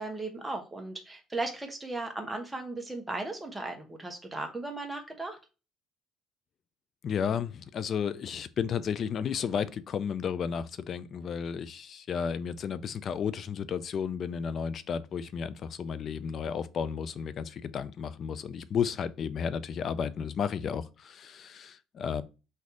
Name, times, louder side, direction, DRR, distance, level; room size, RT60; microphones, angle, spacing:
voice 1, 0.0-5.4, right 2 dB, 10° right, 1.0 m, -36 dB
voice 2, 7.0-22.2, left 7 dB, 45° left, 0.4 m, -33 dB
4.2 x 2.7 x 4.7 m
cardioid pair, 125°, 0 cm